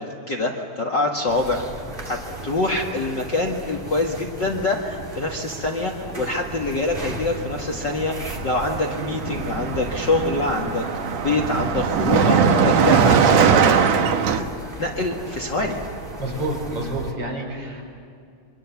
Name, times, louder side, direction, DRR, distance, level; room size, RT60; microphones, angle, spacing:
voice 1, 0.0-1.6 2.0-2.2 2.4-10.9 11.2-14.1 14.4-14.5 14.8-15.8, left 2 dB, 40° left, 2 dB, 1.9 m, -25 dB
sound 1, 1.3-17.1, right 1 dB, 20° right, 2.4 m, -36 dB
Car passing by, 6.9-7.2 7.4-14.4, right 6 dB, 65° right, 2.3 m, -20 dB
voice 2, 16.2-17.8, right 1 dB, 50° right, 0 dB, 6.1 m, -28 dB
29.0 x 24.5 x 7.1 m, 2.4 s
omnidirectional pair, 3.5 m